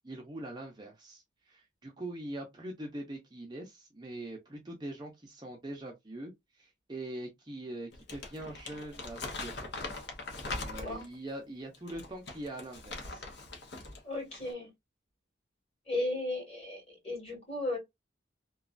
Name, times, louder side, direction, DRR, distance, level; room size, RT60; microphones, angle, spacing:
voice 1, 0.0-9.7 10.4-13.2, right 1 dB, 20° right, 0.6 m, -43 dB
Crumpling crinkling, 7.9-11.1 11.7-14.0 14.3-14.5, left 3 dB, 60° left, 0.8 m, -41 dB
voice 2, 14.0-14.7 15.9-17.8, left 2 dB, 30° left, 1.9 m, -35 dB
3.1 x 2.3 x 2.4 m
head